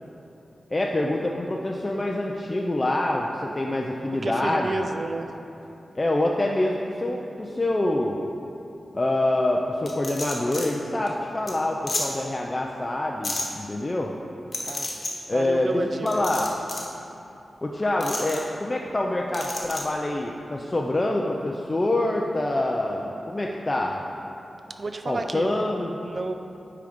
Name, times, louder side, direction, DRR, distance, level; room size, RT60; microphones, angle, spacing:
voice 1, 0.7-4.7 5.9-8.3 8.9-14.1 15.3-16.5 17.6-24.0 25.1-26.0, left 1 dB, 25° left, -1 dB, 0.4 m, -26 dB
voice 2, 4.2-5.3 14.7-14.9 15.3-16.3 24.7-25.5 26.0-26.3, right 3 dB, 45° right, 6 dB, 0.4 m, -31 dB
sound 1, 9.9-10.7 11.1-11.2 11.5-11.6 11.9-12.0 13.2-13.4 14.5-15.1 16.1-16.9 18.0-18.4 19.3-19.8, left 2 dB, 45° left, 1.1 m, -31 dB
8.9 x 3.8 x 5.1 m, 2.8 s
wide cardioid pair, 135°, 0 cm